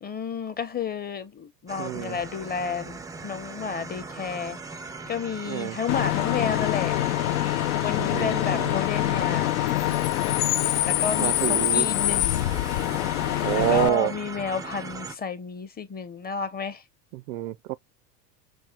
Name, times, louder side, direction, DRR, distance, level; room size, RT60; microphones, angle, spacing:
voice 1, 0.0-4.6 5.1-7.0 7.8-9.6 10.8-12.4 13.5-16.8, left 6 dB, 20° left, 0.8 m, -31 dB
sound 1, 1.7-15.2, right 4 dB, 10° right, 0.4 m, -39 dB
voice 2, 1.8-2.2 5.5-5.8 8.0-8.8 11.2-11.9 13.4-14.1 17.1-17.8, right 17 dB, 70° right, 0.6 m, -27 dB
Bus / Idling / Screech, 5.9-13.9, left 15 dB, 65° left, 0.6 m, -25 dB
6.1 x 2.3 x 3.0 m
hypercardioid pair, 105°, 47 cm